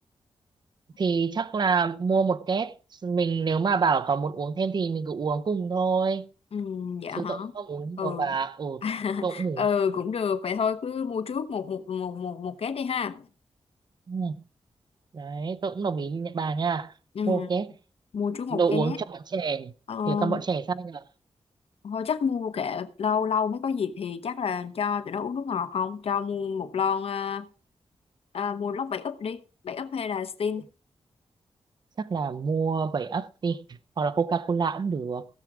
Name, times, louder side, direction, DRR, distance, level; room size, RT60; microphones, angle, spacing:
voice 1, 1.0-2.7 3.0-6.3 7.2-8.8 9.2-9.7 14.1-14.4 15.1-16.9 17.3-17.7 18.5-19.7 20.1-21.0 32.0-33.6 34.0-35.3, right 5 dB, 45° right, 0.6 m, -27 dB
voice 2, 6.5-7.5 8.0-8.3 8.8-13.3 17.1-17.5 18.1-19.0 19.9-20.4 21.8-27.5 28.3-30.6, left 6 dB, 70° left, 1.0 m, -29 dB
16.5 x 7.4 x 4.9 m
wide cardioid pair, 115°, 10 cm